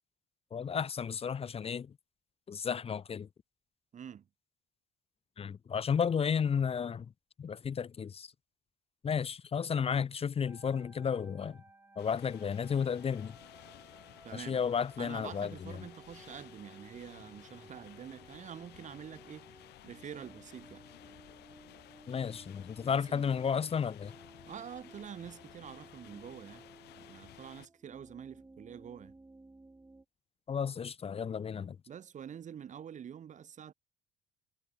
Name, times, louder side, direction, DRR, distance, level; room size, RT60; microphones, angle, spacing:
voice 1, 0.5-1.9 2.5-3.3 5.4-7.1 7.4-8.3 9.0-11.6 12.0-13.4 14.3-15.7 22.1-24.1 30.5-31.8, left 7 dB, 35° left, 1.3 m, -33 dB
voice 2, 3.9-4.3 14.2-14.6 15.0-20.8 22.8-23.3 24.5-26.6 27.0-29.1 31.9-33.7, right 8 dB, 45° right, 3.2 m, -47 dB
sound 1, 10.4-30.1, right 2 dB, 15° right, 4.0 m, -58 dB
sound 2, 12.0-27.7, left 16 dB, 80° left, 4.7 m, -55 dB
cardioid pair, 110°, 17 cm